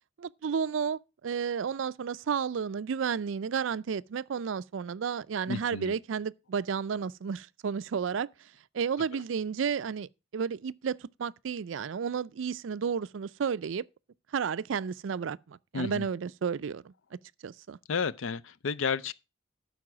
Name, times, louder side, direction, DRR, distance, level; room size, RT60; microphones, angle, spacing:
voice 1, 0.2-8.3 8.7-13.8 14.3-16.9 17.4-17.8, right 6 dB, 70° right, 0.4 m, -32 dB
voice 2, 5.5-5.9 9.1-9.2 15.7-16.1 17.9-19.1, left 5 dB, 85° left, 0.6 m, -32 dB
12.5 x 4.7 x 6.0 m
head